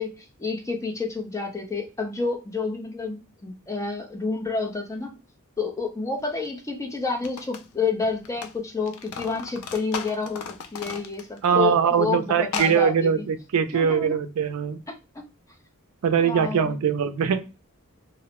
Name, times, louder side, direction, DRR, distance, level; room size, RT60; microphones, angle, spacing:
voice 1, 0.0-5.1 5.6-13.3 13.7-14.2 14.9-15.3 16.2-16.7, left 4 dB, 15° left, 2 dB, 0.4 m, -29 dB
sound 1, 6.4-6.5 7.1-8.5 8.8-11.5 11.8-11.9 12.4-12.8, left 6 dB, 75° left, 0.4 m, -35 dB
voice 2, 11.4-14.8 16.0-17.4, right 7 dB, 70° right, 9 dB, 0.4 m, -22 dB
2.4 x 2.0 x 2.8 m, 0.29 s
head